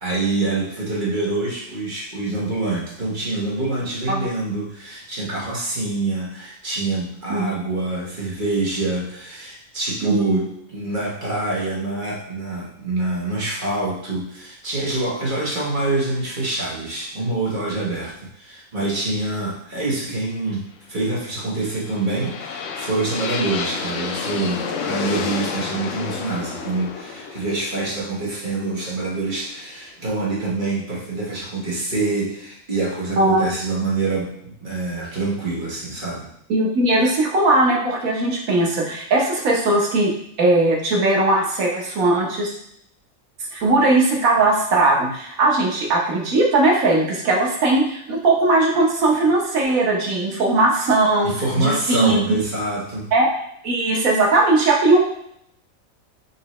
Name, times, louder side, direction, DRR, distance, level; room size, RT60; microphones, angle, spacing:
voice 1, 0.0-10.5 10.7-36.3 51.2-53.1, right 2 dB, 40° right, -5 dB, 1.3 m, -26 dB
voice 2, 10.0-10.4 33.2-33.5 36.5-40.1 40.4-42.5 43.5-52.2 53.1-53.3 53.6-55.1, right 2 dB, 85° right, -1 dB, 1.4 m, -19 dB
sound 1, 21.5-29.5, left 5 dB, 70° left, 0.9 m, -30 dB
5.4 x 2.8 x 3.1 m, 0.73 s
omnidirectional pair, 1.4 m